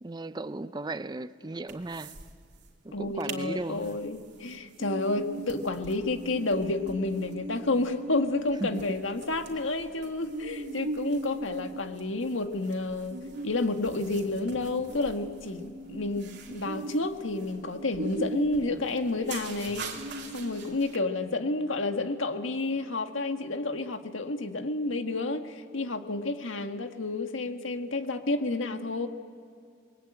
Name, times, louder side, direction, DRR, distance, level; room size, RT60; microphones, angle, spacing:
voice 1, 0.0-2.2 2.8-4.0 8.6-8.8, right 2 dB, 20° right, 13 dB, 0.6 m, -36 dB
sound 1, 1.7-2.3 2.6-2.7 3.0-3.4 3.8-21.0, right 2 dB, 60° right, 2.8 m, -40 dB
voice 2, 2.9-19.9 20.3-29.1, left 2 dB, 80° left, 6 dB, 1.6 m, -30 dB
29.5 x 21.5 x 8.8 m, 2.2 s
head